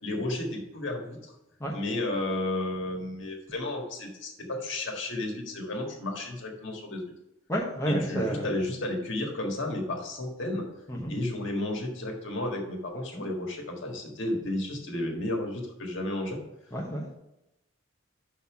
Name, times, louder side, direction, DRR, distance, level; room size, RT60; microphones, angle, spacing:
voice 1, 0.0-1.3 1.7-7.0 7.9-10.7 11.1-16.4, left 1 dB, 65° left, 1 dB, 1.6 m, -32 dB
voice 2, 7.5-8.5 10.9-11.1 13.1-13.3 16.7-17.1, equal, 15° left, -2 dB, 1.0 m, -30 dB
5.7 x 5.5 x 5.9 m, 0.90 s
head